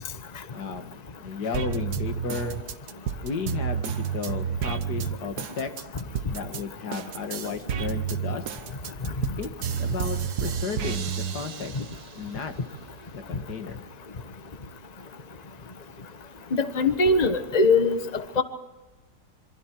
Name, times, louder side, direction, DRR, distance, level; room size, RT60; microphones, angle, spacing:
voice 1, 0.5-2.6 3.2-5.7 6.3-8.4 9.4-11.1 11.3-11.7 12.2-12.5 13.1-13.8, left 5 dB, 85° left, 7 dB, 2.3 m, -34 dB
sound 1, 1.5-6.6 6.9-12.1 12.6-13.5, right 8 dB, 75° right, 1.6 m, -31 dB
voice 2, 16.5-18.0 18.4-18.5, left 3 dB, 25° left, 9 dB, 1.4 m, -21 dB
27.0 x 24.5 x 4.6 m, 1.1 s
omnidirectional pair, 1.7 m